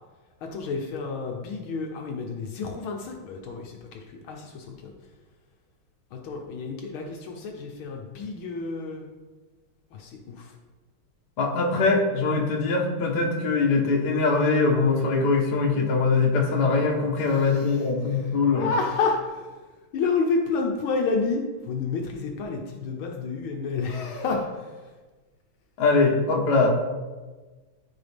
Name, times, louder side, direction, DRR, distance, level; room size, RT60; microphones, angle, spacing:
voice 1, 0.4-4.9 6.1-9.1 9.9-10.6 17.2-19.6 19.9-24.9, left 4 dB, 80° left, 2 dB, 1.7 m, -30 dB
voice 2, 11.4-18.7 25.8-26.7, left 4 dB, 55° left, 0 dB, 1.7 m, -22 dB
13.5 x 4.9 x 3.5 m, 1.3 s
omnidirectional pair, 2.3 m